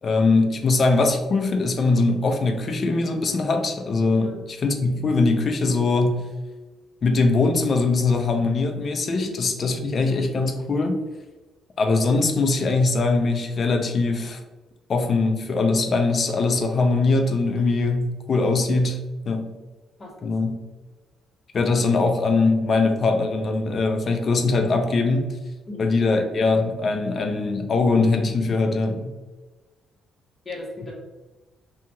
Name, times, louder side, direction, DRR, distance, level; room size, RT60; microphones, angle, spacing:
voice 1, 0.0-6.2 7.0-11.0 11.8-14.4 14.9-19.0 19.3-19.5 20.2-20.6 21.5-25.3 25.8-29.1, left 3 dB, 45° left, 5 dB, 0.4 m, -21 dB
voice 2, 20.0-20.3 25.7-25.9 30.4-31.0, left 2 dB, 30° left, -4 dB, 1.1 m, -36 dB
2.8 x 2.7 x 2.2 m, 1.2 s
cardioid pair, 90°, 0 cm